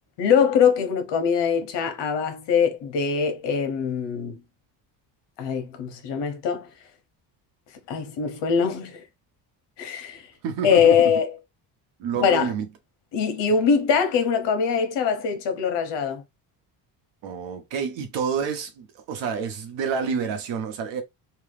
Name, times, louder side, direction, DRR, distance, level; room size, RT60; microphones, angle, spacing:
voice 1, 0.2-4.4 5.4-6.7 7.9-9.0 9.8-10.2 10.6-11.4 12.2-12.5 13.1-16.2, left 7 dB, 70° left, 1.1 m, -22 dB
voice 2, 10.4-11.1 12.0-12.7 17.2-21.0, right 6 dB, 75° right, 1.1 m, -28 dB
3.0 x 2.3 x 3.3 m
cardioid pair, 135°, 44 cm